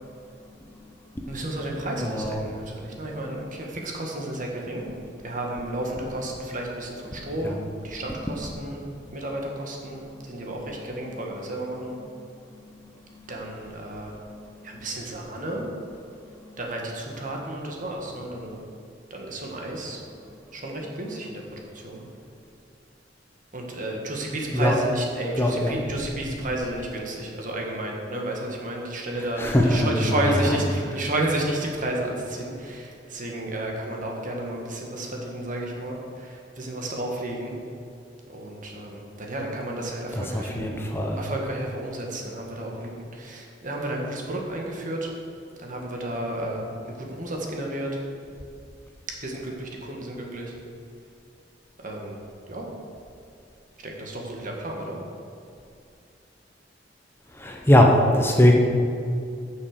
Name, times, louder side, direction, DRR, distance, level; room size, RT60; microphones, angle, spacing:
voice 1, 1.3-4.9 5.2-12.0 13.3-14.1 14.6-15.7 16.6-18.6 19.1-20.0 20.5-22.1 23.5-37.6 38.3-40.7 41.1-45.1 45.6-48.0 49.2-50.5 51.8-52.2 52.5-52.7 53.8-55.0, right 1 dB, 45° right, 0 dB, 1.7 m, -32 dB
voice 2, 2.0-2.5 7.4-7.5 13.0-13.1 24.5-24.8 25.4-25.7 29.4-30.4 40.3-41.2 57.3-58.6, left 1 dB, 15° left, 1 dB, 0.8 m, -20 dB
9.4 x 6.5 x 6.6 m, 2.4 s
head